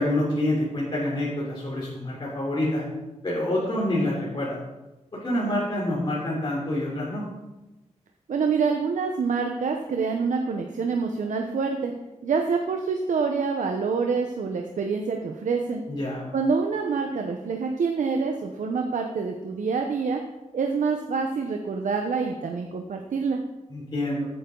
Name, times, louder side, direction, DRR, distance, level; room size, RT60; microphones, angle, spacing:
voice 1, 0.0-2.8 3.2-4.6 5.2-7.2 15.9-16.3 23.7-24.3, left 1 dB, 40° left, -6 dB, 3.7 m, -27 dB
voice 2, 8.3-11.9 12.2-15.8 16.3-20.2 20.5-23.4, right 5 dB, 90° right, 3 dB, 1.0 m, -26 dB
15.0 x 9.2 x 3.9 m, 1.0 s
wide cardioid pair, 110°, 13 cm